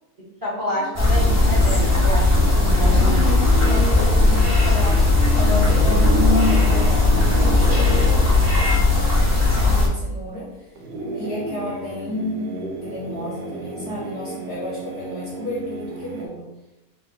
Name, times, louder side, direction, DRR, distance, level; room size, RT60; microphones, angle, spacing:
voice 1, 0.4-3.2, left 1 dB, 15° right, -7 dB, 0.9 m, -28 dB
sound 1, 1.0-9.9, left 3 dB, 20° left, 0.4 m, -17 dB
sound 2, 1.0-8.7 10.8-16.3, right 2 dB, 70° right, 1.1 m, -34 dB
voice 2, 2.6-10.7 11.1-16.5, equal, 55° left, -5 dB, 0.9 m, -32 dB
sound 3, 2.9-4.1 4.4-8.8, right 1 dB, 45° right, 1.1 m, -27 dB
2.9 x 2.2 x 4.0 m, 0.94 s
omnidirectional pair, 1.6 m